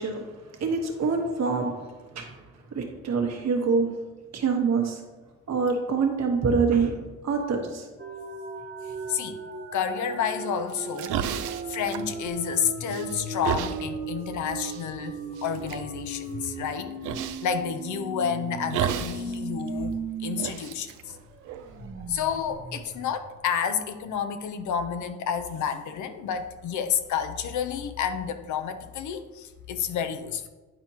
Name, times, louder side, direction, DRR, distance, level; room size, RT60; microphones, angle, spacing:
voice 1, 0.0-1.7 2.1-2.4 2.7-3.9 4.3-5.0 5.5-6.9 7.2-7.9, right 5 dB, 60° right, 2 dB, 1.3 m, -25 dB
sound 1, 8.0-20.5 20.8-20.9 21.3-24.0, right 4 dB, 45° right, 0.8 m, -37 dB
voice 2, 9.7-16.9 17.4-21.2 22.1-30.5, left 8 dB, 75° left, 9 dB, 0.7 m, -30 dB
sound 2, 10.7-12.6 12.9-13.8 14.7-14.8 15.4-15.8 17.0-17.5 18.7-19.3 19.6-19.7 20.4-21.9, right 9 dB, 85° right, 0.5 m, -31 dB
10.0 x 4.3 x 2.9 m, 1.3 s
cardioid pair, 90°, 30 cm